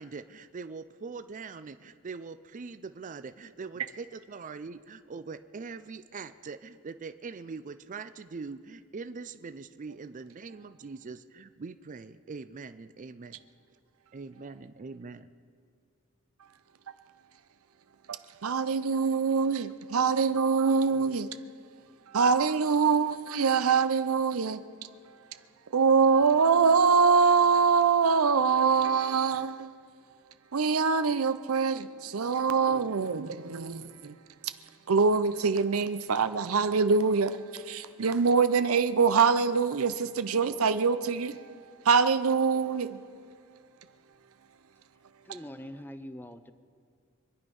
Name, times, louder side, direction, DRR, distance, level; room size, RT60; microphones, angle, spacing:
voice 1, 0.0-13.4 14.1-15.3, right 4 dB, 35° right, 0.4 m, -42 dB
voice 2, 18.4-21.3 22.1-24.6 25.7-29.7 30.5-34.1 34.9-41.4 41.8-43.0, right 5 dB, 85° right, 0.7 m, -24 dB
voice 3, 45.2-46.5, left 1 dB, 10° left, 0.6 m, -43 dB
25.5 x 10.0 x 5.4 m
head